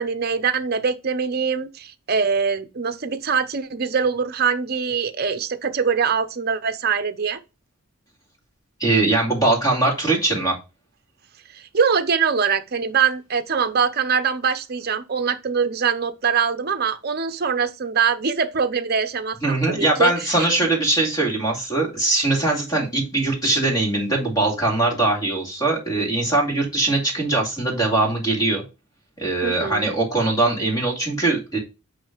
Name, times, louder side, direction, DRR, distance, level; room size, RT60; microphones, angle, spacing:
voice 1, 0.0-7.4 11.5-20.5 29.4-29.9, right 6 dB, 45° right, 0.7 m, -23 dB
voice 2, 8.8-10.6 19.4-28.6 29.2-31.6, right 2 dB, 15° left, 2.4 m, -21 dB
8.6 x 3.2 x 5.0 m
head